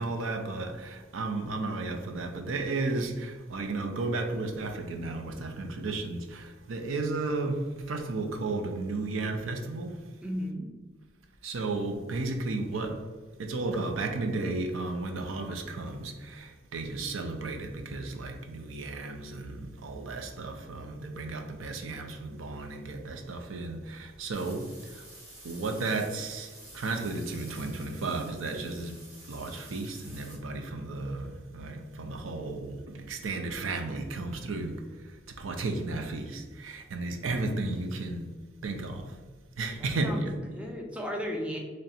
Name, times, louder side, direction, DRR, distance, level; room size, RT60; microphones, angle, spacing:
voice 1, 0.0-10.0 11.4-13.0 13.4-24.7 25.4-26.5 26.7-29.0 29.3-34.7 35.4-38.2 38.6-39.0 39.6-40.3, right 3 dB, 85° right, 0.5 m, -33 dB
voice 2, 10.2-10.7 39.8-41.6, equal, 5° right, 0.4 m, -35 dB
sound 1, 24.3-30.4, right 1 dB, 55° right, 1.5 m, -50 dB
3.1 x 2.7 x 4.1 m
head